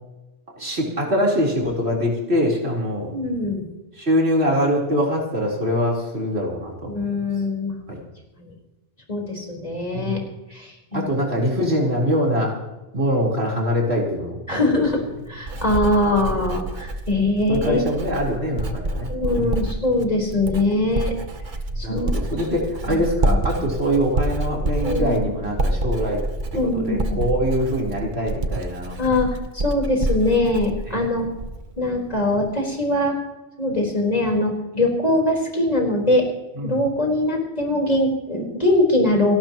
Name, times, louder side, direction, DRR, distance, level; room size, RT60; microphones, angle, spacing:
voice 1, 0.6-3.1 4.0-7.1 7.9-8.0 9.9-10.2 10.9-12.6 12.9-14.6 17.5-19.1 19.3-19.6 21.8-26.2 26.6-29.0 30.9-31.0 36.6-36.7, equal, 85° right, -3 dB, 4.3 m, -23 dB
voice 2, 3.1-3.6 6.9-7.8 8.4-8.5 9.1-10.2 10.5-11.0 14.5-15.0 15.3-18.0 19.1-21.1 21.8-22.1 22.8-23.0 23.3-23.6 24.8-25.3 26.5-27.2 29.0-29.4 29.6-31.3 31.8-33.1 33.6-36.3 36.6-39.4, left 1 dB, 40° left, -1 dB, 4.4 m, -22 dB
Writing, 14.7-31.8 32.1-32.5, right 2 dB, 50° right, 1.2 m, -27 dB
30.0 x 12.0 x 3.0 m, 1.1 s
omnidirectional pair, 1.1 m